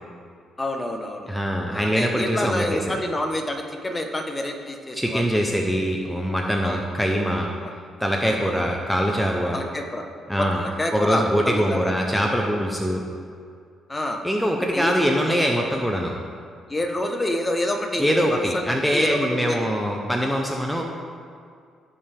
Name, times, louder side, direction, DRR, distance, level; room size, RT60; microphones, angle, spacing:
voice 1, 0.6-1.3 1.7-5.3 6.6-6.8 7.6-7.7 8.2-8.5 9.5-10.0 10.4-11.9 13.9-14.2 14.7-14.9 15.2-15.4 16.7-19.7, left 1 dB, 20° left, 4 dB, 1.1 m, -28 dB
voice 2, 1.3-2.9 4.9-7.5 8.0-9.6 10.3-10.6 10.9-13.0 14.2-16.1 18.0-20.8, equal, ahead, 0 dB, 0.9 m, -23 dB
15.5 x 5.6 x 3.5 m, 2.3 s
cardioid pair, 90°, 0 cm